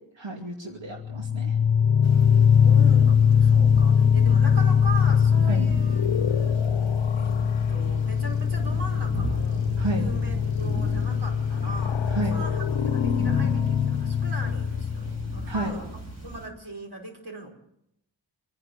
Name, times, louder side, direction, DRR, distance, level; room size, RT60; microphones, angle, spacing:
voice 1, 0.1-1.6 5.5-5.7 9.8-10.0 12.1-12.4 15.5-15.7, right 2 dB, 85° right, 0 dB, 2.7 m, -31 dB
sound 1, 1.0-15.6, left 7 dB, 90° left, 0.8 m, -22 dB
Thunder / Rain, 2.0-16.5, right 1 dB, 35° right, 4.3 m, -37 dB
voice 2, 2.4-6.6 7.2-7.4 7.7-15.9 16.2-17.5, right 2 dB, 60° right, 1 dB, 5.2 m, -40 dB
26.5 x 11.0 x 9.6 m, 0.80 s
wide cardioid pair, 85°, 44 cm